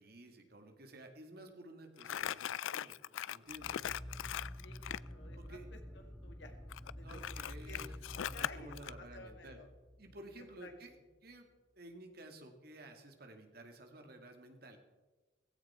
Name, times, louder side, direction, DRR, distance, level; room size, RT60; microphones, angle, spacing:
voice 1, 0.0-3.8 5.3-5.7 7.0-7.9 8.2-9.6 10.0-10.9 11.2-11.5 11.8-14.8, right 1 dB, 55° right, 4 dB, 2.2 m, -53 dB
Crumpling crinkling, 2.0-5.1 6.7-8.9, left 10 dB, 85° left, 0.4 m, -40 dB
sound 1, 3.5-10.8, equal, ahead, 0.9 m, -49 dB
voice 2, 4.6-6.5 7.0-7.2 7.7-7.8 8.1-9.7 10.4-10.7, left 2 dB, 70° left, 5 dB, 2.2 m, -54 dB
17.0 x 15.5 x 4.4 m, 1.2 s
head